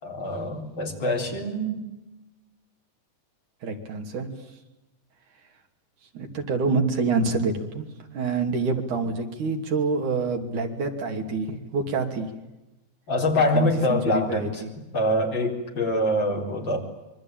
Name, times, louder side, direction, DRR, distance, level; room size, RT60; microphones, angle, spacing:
voice 1, 0.0-1.8 13.1-14.6 14.9-16.8, left 1 dB, 35° left, 2 dB, 4.9 m, -25 dB
voice 2, 3.6-4.3 6.1-7.9 8.1-12.3 13.3-14.7, right 4 dB, 70° right, 4 dB, 4.3 m, -27 dB
26.0 x 23.5 x 9.0 m, 1.0 s
omnidirectional pair, 3.6 m